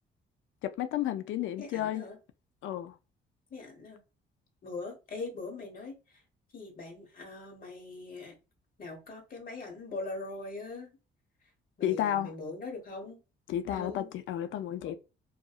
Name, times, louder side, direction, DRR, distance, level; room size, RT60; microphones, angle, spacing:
voice 1, 0.6-2.0 2.6-2.9 11.8-12.3 13.5-15.0, left 11 dB, 75° left, 0.4 m, -32 dB
voice 2, 1.6-2.2 3.5-4.0 4.6-6.2 6.5-8.3 8.8-10.9 11.8-13.2 13.7-14.1 14.5-15.0, left 3 dB, 45° left, 1.2 m, -42 dB
2.7 x 2.5 x 2.3 m
cardioid pair, 90°, 20 cm